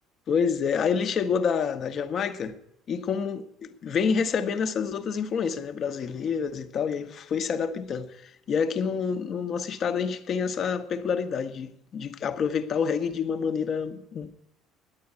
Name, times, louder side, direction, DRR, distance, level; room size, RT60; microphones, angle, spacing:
voice 1, 0.3-2.6 2.9-14.3, left 6 dB, 50° left, 1.1 m, -28 dB
10.5 x 8.7 x 9.6 m
hypercardioid pair, 60°, 0 cm